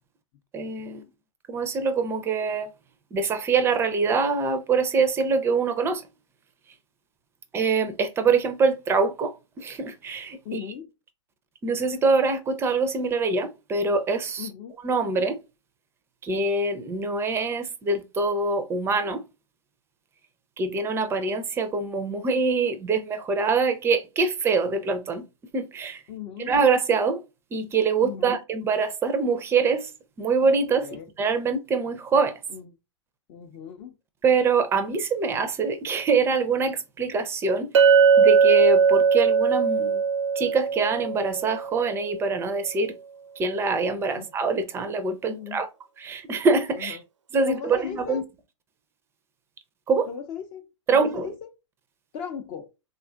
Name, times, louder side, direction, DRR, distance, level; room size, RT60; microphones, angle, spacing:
voice 1, 0.5-1.0 1.5-2.7 3.1-6.0 7.5-10.6 11.6-14.5 14.8-15.4 16.2-19.2 20.6-25.2 25.5-26.0 26.4-27.2 27.5-29.9 30.2-30.9 31.2-32.4 34.2-37.7 38.2-40.0 40.4-42.9 43.4-45.7 46.0-47.0 47.3-48.2 49.9-50.1 50.9-51.3, right 4 dB, 15° right, 0.4 m, -24 dB
voice 2, 10.4-10.9 14.4-14.7 26.1-26.5 28.0-28.4 30.8-31.1 32.5-32.7 33.3-33.9 44.1-44.3 45.3-45.6 46.8-47.0 47.4-48.2 50.1-51.5 52.1-52.7, left 8 dB, 35° left, 0.5 m, -37 dB
Chink clink, 37.7-42.0, right 6 dB, 70° right, 0.4 m, -19 dB
3.6 x 2.3 x 2.3 m
figure-of-eight pair, 110°, 16 cm